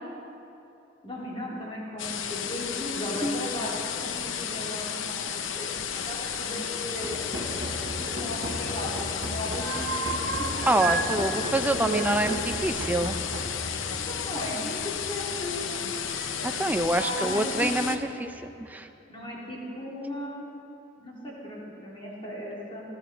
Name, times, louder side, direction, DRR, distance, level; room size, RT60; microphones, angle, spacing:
voice 1, 1.0-10.8 11.2-11.3 11.8-12.2 13.7-15.7 17.2-17.7 19.1-20.5 21.0-22.8, left 1 dB, 30° left, -5 dB, 3.7 m, -37 dB
sound 1, 2.0-18.0, left 7 dB, 85° left, 0.8 m, -33 dB
sound 2, 6.9-18.8, equal, 25° right, 3.6 m, -38 dB
sound 3, 8.1-9.0 9.3-11.1 11.4-13.9 15.0-15.1 16.0-16.6 16.9-17.3, right 4 dB, 65° right, 0.9 m, -34 dB
voice 2, 10.7-13.2 16.4-18.3 18.6-18.9, right 1 dB, 10° right, 6 dB, 0.6 m, -26 dB
19.5 x 14.0 x 4.6 m, 2.8 s
head